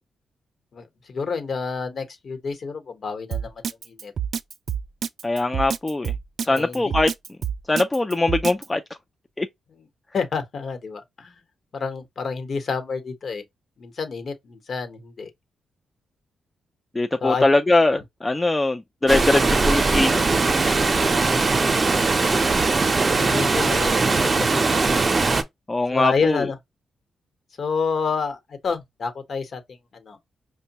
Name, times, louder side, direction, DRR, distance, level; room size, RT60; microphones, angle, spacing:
voice 1, 0.7-4.1 6.5-6.9 9.7-9.8 10.1-11.4 11.7-13.4 13.8-15.3 17.2-17.4 21.0-21.2 22.6-22.7 23.2-24.8 25.9-26.6 27.6-30.2, left 5 dB, 60° left, 1.1 m, -29 dB
Drum kit, 3.3-8.7, right 8 dB, 65° right, 0.3 m, -27 dB
voice 2, 5.2-6.1 6.4-7.1 7.7-8.8 9.4-9.5 16.9-20.2 25.7-26.5, left 2 dB, 25° left, 0.5 m, -21 dB
Water, 19.1-25.4, right 3 dB, 40° right, 0.7 m, -20 dB
5.1 x 2.2 x 2.9 m
supercardioid pair, 50°, 0 cm